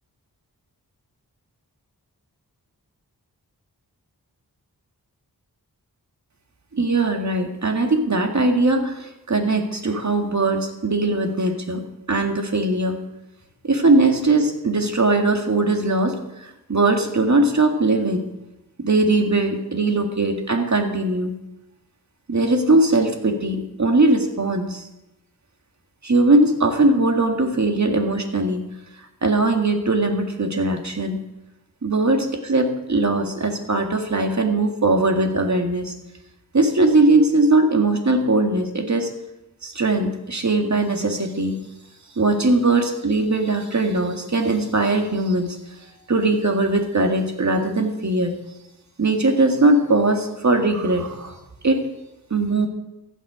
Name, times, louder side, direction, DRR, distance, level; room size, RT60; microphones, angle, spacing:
voice 1, 6.7-11.8 12.1-13.0 13.6-18.2 18.8-21.4 22.3-24.9 26.0-28.7 29.2-31.2 31.8-35.9 36.5-39.1 39.6-41.6 42.2-45.6 46.1-48.4 49.0-51.4 51.6-51.9 52.3-52.7, right 2 dB, 45° right, 4 dB, 2.0 m, -20 dB
14.5 x 9.5 x 5.0 m, 0.95 s
wide cardioid pair, 60°, 38 cm